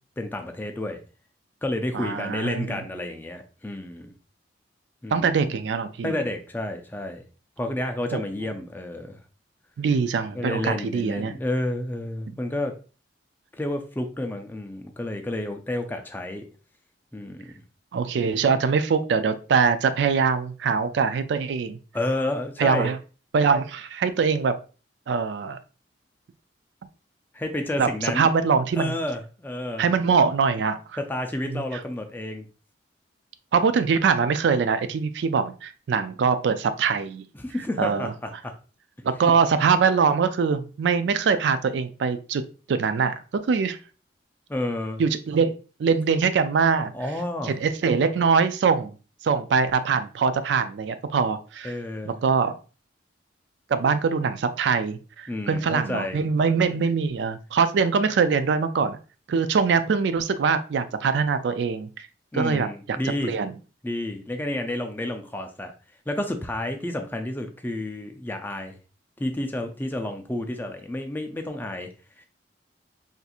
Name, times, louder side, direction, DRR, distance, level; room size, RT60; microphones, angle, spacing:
voice 1, 0.2-1.0 1.6-4.1 5.0-5.3 6.0-7.2 7.6-9.2 10.3-12.7 13.5-16.4 17.1-17.5 21.9-22.9 27.3-28.3 28.8-29.9 31.0-32.5 37.3-38.5 44.5-45.0 46.9-47.6 51.6-52.2 55.3-56.2 62.3-63.3 63.8-65.7 66.1-68.8 69.2-71.9 72.2-72.3, left 1 dB, 10° left, 5 dB, 0.4 m, -30 dB
voice 2, 1.9-2.8 5.1-6.2 8.1-8.2 9.8-11.3 17.9-21.8 22.6-23.0 23.3-24.6 25.1-25.6 27.8-28.9 29.8-30.8 31.5-31.6 33.5-37.2 37.8-38.1 39.0-42.4 42.7-43.1 43.5-43.8 45.0-46.9 47.5-49.0 49.2-51.7 52.1-52.6 53.7-59.0 59.3-62.1 62.3-63.0 63.2-63.5, right 5 dB, 70° right, 11 dB, 0.3 m, -23 dB
4.2 x 2.6 x 2.3 m, 0.35 s
head